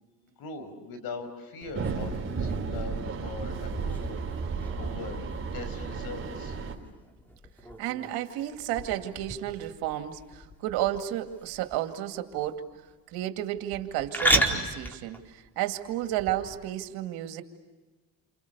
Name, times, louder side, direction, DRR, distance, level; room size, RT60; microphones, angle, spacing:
voice 1, 0.4-4.2 4.8-6.6, left 3 dB, 70° left, 10 dB, 5.4 m, -41 dB
sound 1, 1.6-16.7, right 1 dB, 5° left, 4.5 m, -35 dB
sound 2, 1.7-6.7, right 4 dB, 35° right, 4.5 m, -33 dB
voice 2, 7.8-12.6 13.1-17.4, right 13 dB, 90° right, 7 dB, 2.4 m, -32 dB
29.5 x 29.0 x 6.9 m, 1.2 s
cardioid pair, 100°, 37 cm